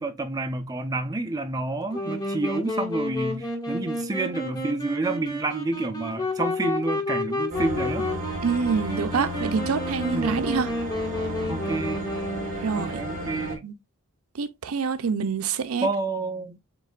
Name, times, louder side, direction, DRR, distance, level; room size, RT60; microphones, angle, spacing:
voice 1, 0.0-8.1 10.1-10.5 11.5-12.0 12.7-13.6 15.8-16.6, right 2 dB, 20° right, 0.6 m, -29 dB
Wind instrument woodwind instrument, 1.9-12.8, left 1 dB, 20° left, 1.6 m, -31 dB
sound 1, 7.5-13.6, equal, 40° right, 1.8 m, -33 dB
voice 2, 8.4-10.7 12.6-13.0 13.6-13.8 14.3-15.9, right 5 dB, 80° right, 0.5 m, -26 dB
7.7 x 2.8 x 2.4 m
head